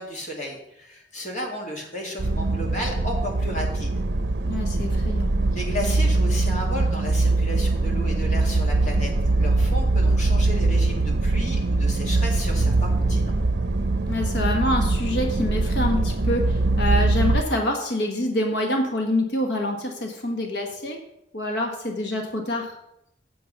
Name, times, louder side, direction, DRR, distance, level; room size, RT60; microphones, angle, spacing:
voice 1, 0.0-3.9 5.5-13.4, left 1 dB, 45° left, 0 dB, 2.2 m, -33 dB
sound 1, 2.2-17.4, right 2 dB, 70° right, 0.7 m, -22 dB
voice 2, 4.5-5.3 14.1-21.0 21.3-22.8, left 1 dB, 70° left, 3 dB, 1.3 m, -26 dB
8.1 x 7.5 x 5.3 m, 0.80 s
head